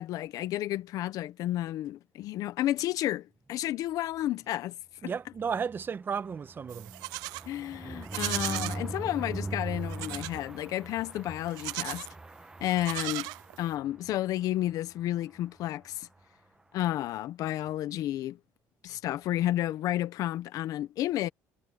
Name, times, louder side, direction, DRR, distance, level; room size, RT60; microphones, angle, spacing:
voice 1, 0.0-4.7 5.0-5.1 7.5-12.1 12.6-13.3 13.6-16.1 16.7-18.4 18.8-21.3, left 13 dB, 65° left, 1.0 m, -31 dB
voice 2, 5.0-6.9 7.8-8.0, right 6 dB, 35° right, 1.3 m, -34 dB
sound 1, 5.3-14.1 14.6-14.7 15.0-15.1 15.4-15.6, right 2 dB, 10° right, 1.1 m, -41 dB
Livestock farm animals working animals, 6.7-7.5 8.0-8.8 9.9-10.4 11.5-12.1 12.7-13.7, right 24 dB, 90° right, 0.4 m, -36 dB
cardioid pair, 105°, 6 cm